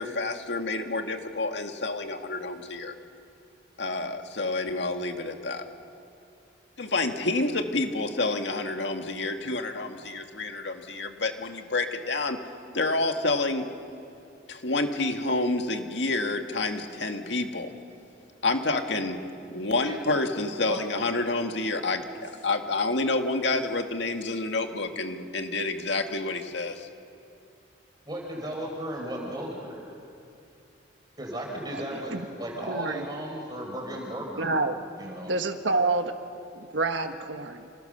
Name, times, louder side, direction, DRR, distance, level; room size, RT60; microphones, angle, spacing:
voice 1, 0.0-2.9 3.8-5.7 6.8-12.4 12.7-13.7 14.5-17.7 18.4-19.2 19.5-26.9, left 2 dB, 70° left, 5 dB, 2.0 m, -28 dB
voice 2, 28.0-29.8 31.2-34.6 35.0-35.3, right 1 dB, 20° right, 0 dB, 5.0 m, -35 dB
voice 3, 31.7-32.2 32.7-33.0 34.4-34.8 35.3-36.1 36.6-37.7, right 3 dB, 85° right, 6 dB, 1.6 m, -28 dB
29.0 x 27.5 x 6.8 m, 2.6 s
head